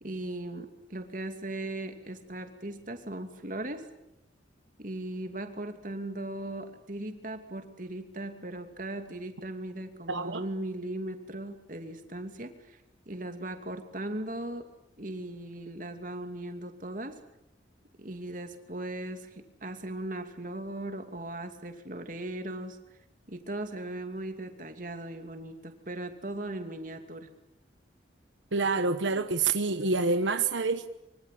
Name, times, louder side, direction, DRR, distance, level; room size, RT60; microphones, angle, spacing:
voice 1, 0.0-3.9 4.8-12.8 13.1-14.6 15.0-17.2 18.0-22.8 23.3-27.3, right 1 dB, 45° right, 2.7 m, -38 dB
voice 2, 10.1-10.4 28.5-30.9, right 3 dB, 85° right, 1.2 m, -27 dB
25.0 x 24.5 x 8.6 m
head